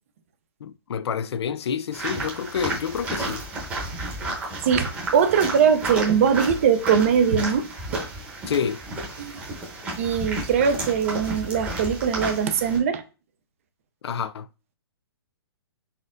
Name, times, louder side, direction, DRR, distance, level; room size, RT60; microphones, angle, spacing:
voice 1, 0.6-3.5 8.5-8.8 14.0-14.5, left 7 dB, 80° left, 0.4 m, -28 dB
sound 1, 1.9-12.8, right 2 dB, 10° right, 0.9 m, -32 dB
voice 2, 4.7-7.6 9.2-9.3 10.0-13.0, right 7 dB, 30° right, 0.4 m, -21 dB
4.2 x 3.9 x 2.5 m
hypercardioid pair, 165°, 14 cm